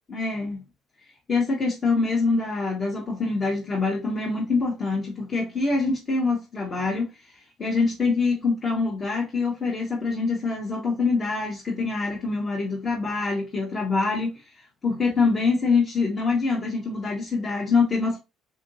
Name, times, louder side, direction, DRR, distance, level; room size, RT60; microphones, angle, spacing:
voice 1, 0.1-0.6 1.3-18.2, left 4 dB, 35° left, 0.9 m, -25 dB
3.7 x 2.6 x 2.7 m
cardioid pair, 95°, 0 cm